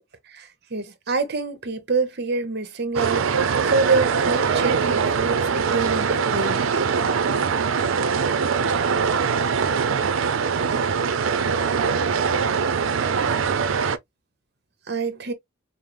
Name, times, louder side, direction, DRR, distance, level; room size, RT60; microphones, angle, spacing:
voice 1, 0.3-6.6 14.9-15.3, right 4 dB, 55° right, 1.0 m, -26 dB
sound 1, 2.9-14.0, right 6 dB, 85° right, 0.5 m, -22 dB
5.5 x 2.0 x 3.1 m
head